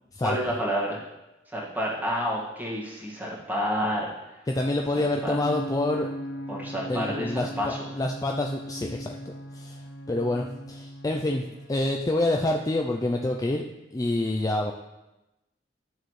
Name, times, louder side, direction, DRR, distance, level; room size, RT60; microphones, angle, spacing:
voice 1, 0.2-1.0 1.5-4.1 5.2-5.4 6.5-7.8, equal, 10° right, -5 dB, 1.8 m, -29 dB
voice 2, 4.5-6.1 6.9-9.2 9.5-11.4 11.7-13.6 13.9-14.7, left 1 dB, 20° left, 2 dB, 0.4 m, -27 dB
sound 1, 4.9-11.9, equal, 70° left, 0.7 m, -38 dB
10.5 x 6.5 x 3.2 m, 1.0 s
head